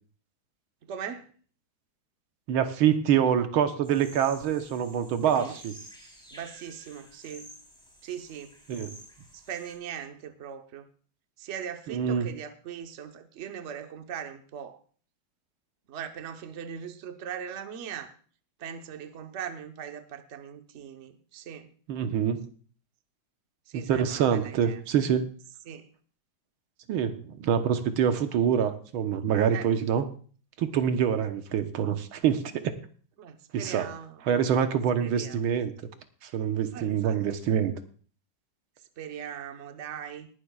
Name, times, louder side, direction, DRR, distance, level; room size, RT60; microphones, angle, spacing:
voice 1, 0.9-1.3 5.1-5.6 6.3-7.5 8.0-8.5 9.3-10.9 11.4-14.8 15.9-18.1 18.6-21.7 23.7-24.8 25.7-25.9 29.5-29.7 33.2-34.2 35.0-35.5 36.7-37.2 38.8-40.3, right 8 dB, 45° right, 7 dB, 1.0 m, -40 dB
voice 2, 2.5-5.7 8.7-8.9 11.9-12.3 21.9-22.5 23.7-25.2 26.9-30.1 30.6-32.8 33.5-33.9 34.3-35.7 36.2-37.8, right 8 dB, 90° right, 8 dB, 1.8 m, -26 dB
sound 1, 3.8-9.8, equal, ahead, 3.3 m, -51 dB
19.5 x 11.5 x 2.3 m, 0.42 s
omnidirectional pair, 2.2 m